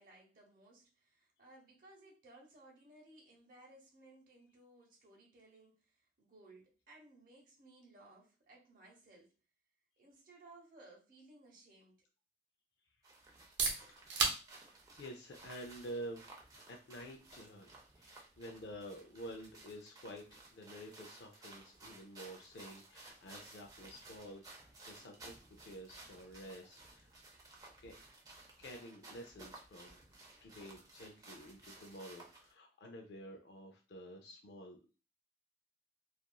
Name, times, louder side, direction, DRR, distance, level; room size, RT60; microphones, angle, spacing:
voice 1, 0.0-9.3 10.0-12.0 13.8-14.0, right 2 dB, 50° right, -1 dB, 0.9 m, -60 dB
sound 1, 13.0-32.5, right 2 dB, 20° right, 0.5 m, -57 dB
sound 2, 13.3-28.9, right 4 dB, 90° right, 0.7 m, -46 dB
voice 2, 14.6-16.4 16.7-17.7 18.0-27.1 27.8-27.9 28.6-30.0 30.4-35.0, equal, 75° left, 2 dB, 0.4 m, -50 dB
2.9 x 2.4 x 2.2 m, 0.33 s
head